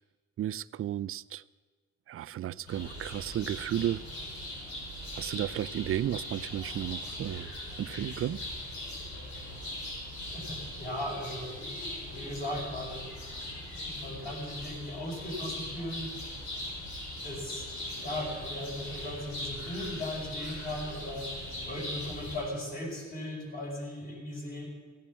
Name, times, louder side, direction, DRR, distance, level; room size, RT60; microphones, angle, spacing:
voice 1, 0.4-1.4 2.1-4.0 5.1-7.5 7.8-8.4, right 11 dB, 45° right, 0.4 m, -33 dB
sound 1, 2.7-22.4, left 1 dB, 70° left, 6.0 m, -40 dB
voice 2, 10.3-11.7 12.1-13.1 13.8-16.1 17.2-17.7 18.0-21.3 21.6-24.7, left 1 dB, 30° left, 5.4 m, -37 dB
16.0 x 9.0 x 7.4 m
cardioid pair, 90°, 30 cm